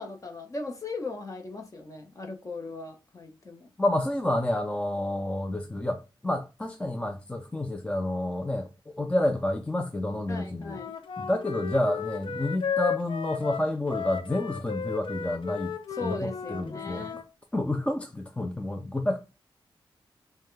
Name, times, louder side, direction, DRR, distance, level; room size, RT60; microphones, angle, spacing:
voice 1, 0.0-3.7 10.3-10.9 15.9-17.2, left 3 dB, 35° left, 1.0 m, -38 dB
voice 2, 3.8-10.8 11.2-15.7 16.0-17.1 17.5-19.2, left 1 dB, 15° left, 0.4 m, -29 dB
Wind instrument woodwind instrument, 10.7-17.2, left 7 dB, 70° left, 0.5 m, -34 dB
5.5 x 2.2 x 3.2 m
wide cardioid pair, 125°, 9 cm